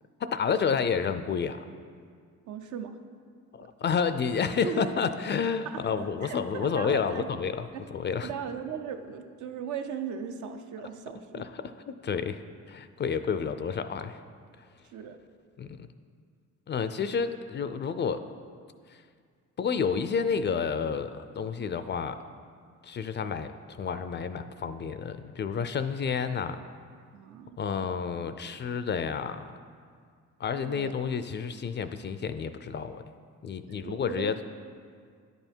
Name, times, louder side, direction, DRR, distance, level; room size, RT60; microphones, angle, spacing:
voice 1, 0.2-1.6 3.5-8.3 10.8-10.9 11.3-12.4 12.7-14.2 15.6-15.9 16.7-18.2 18.9-19.0 19.6-22.2 22.8-23.5 23.8-26.6 27.6-29.5 30.4-33.0 33.4-34.3, left 6 dB, 35° left, 11 dB, 0.4 m, -30 dB
voice 2, 2.5-3.0 3.6-3.7 4.6-4.9 5.6-7.2 7.7-7.9 8.2-11.4 14.8-15.2 27.1-27.9 30.7-31.0 33.7-34.4, right 7 dB, 75° right, 7 dB, 0.7 m, -38 dB
10.5 x 5.6 x 4.5 m, 2.1 s
cardioid pair, 90°, 30 cm